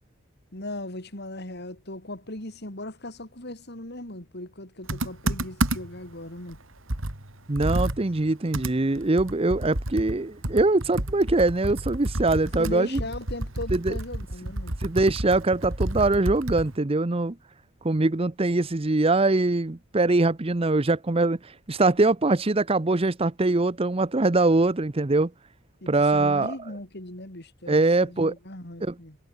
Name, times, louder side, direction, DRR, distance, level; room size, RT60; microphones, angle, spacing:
voice 1, 0.5-6.6 12.6-14.8 25.8-29.2, left 1 dB, 55° left, 4.4 m, -38 dB
Computer keyboard, 4.9-6.1 6.5-6.6 6.9-16.8, right 1 dB, 75° right, 3.3 m, -30 dB
voice 2, 7.5-13.0 13.7-13.9 14.8-17.3 17.8-25.3 25.9-26.6 27.7-28.3 28.8-28.9, right 2 dB, 30° right, 0.7 m, -23 dB
head